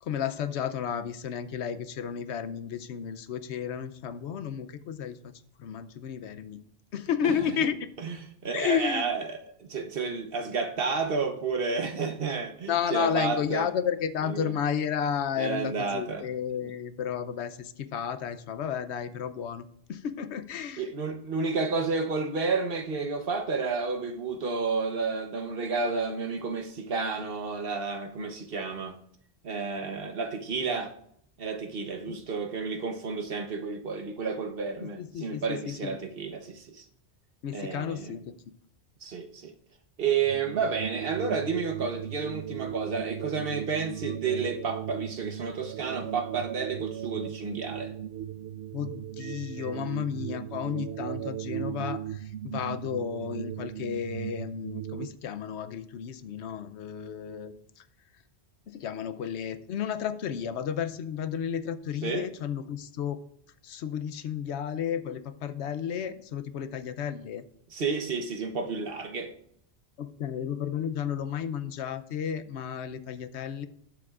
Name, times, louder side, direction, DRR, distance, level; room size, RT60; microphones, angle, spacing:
voice 1, 0.0-5.3 5.6-6.6 6.9-7.9 8.5-9.1 12.7-20.8 32.1-32.2 34.8-36.0 37.4-38.3 48.7-57.8 58.7-63.2 63.6-67.4 70.0-73.7, left 8 dB, 80° left, 0.9 m, -32 dB
voice 2, 8.4-13.7 14.2-14.5 15.4-16.3 16.6-16.7 20.8-28.9 29.4-30.9 31.4-36.8 37.5-38.2 39.0-39.5 40.0-47.9 62.0-62.3 67.7-69.3, right 4 dB, 60° right, 1.1 m, -31 dB
sound 1, 40.2-55.1, right 11 dB, 75° right, 0.8 m, -37 dB
18.5 x 7.0 x 2.4 m
omnidirectional pair, 1.1 m